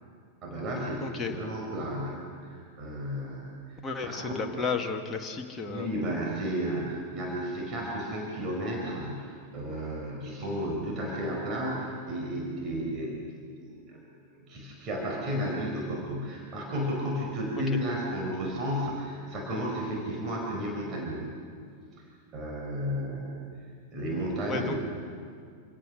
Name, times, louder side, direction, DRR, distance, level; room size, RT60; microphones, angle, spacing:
voice 1, 0.4-3.5 4.0-4.3 5.7-14.0 14.3-21.3 22.3-23.4 23.9-24.8, equal, 30° right, -1 dB, 5.1 m, -33 dB
voice 2, 1.0-1.3 3.8-5.9 24.4-24.7, left 4 dB, 20° left, 2 dB, 1.8 m, -32 dB
27.5 x 17.0 x 6.5 m, 2.2 s
figure-of-eight pair, 90°, 0 cm